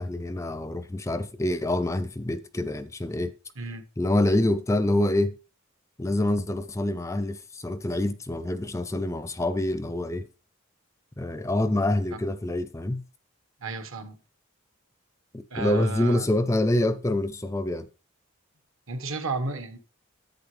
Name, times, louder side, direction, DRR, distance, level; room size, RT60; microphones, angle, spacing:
voice 1, 0.0-3.3 4.0-5.4 6.0-10.3 11.2-13.0 15.3-17.9, left 1 dB, 15° left, 0.4 m, -26 dB
voice 2, 13.6-14.2 15.5-16.3 18.9-19.8, right 3 dB, 75° right, 1.4 m, -33 dB
10.5 x 8.5 x 3.2 m
head